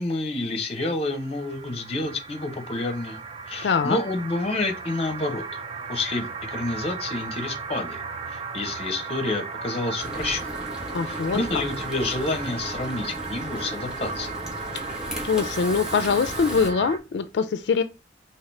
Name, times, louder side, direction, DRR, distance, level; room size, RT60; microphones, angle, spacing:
voice 1, 0.0-3.2 3.5-5.4 5.9-8.0 8.3-10.5 11.1-14.3, left 2 dB, 35° left, 0.8 m, -29 dB
sound 1, 1.0-17.0, right 5 dB, 35° right, 0.4 m, -35 dB
voice 2, 3.6-4.0 10.9-11.4 15.2-17.8, left 5 dB, 75° left, 0.4 m, -23 dB
Frying (food), 10.0-16.7, equal, 5° right, 1.0 m, -36 dB
4.8 x 2.8 x 3.2 m
head